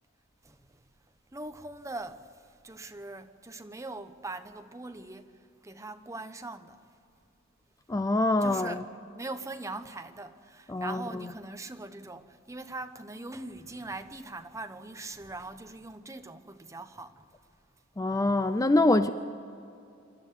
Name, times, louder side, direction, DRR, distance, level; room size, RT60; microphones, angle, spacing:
voice 1, 0.4-0.8 1.3-6.8 8.4-8.8 9.1-17.3, right 2 dB, 15° right, 0.9 m, -41 dB
voice 2, 7.9-8.8 10.7-11.2 18.0-19.1, left 2 dB, 15° left, 0.5 m, -25 dB
26.5 x 12.5 x 9.4 m
head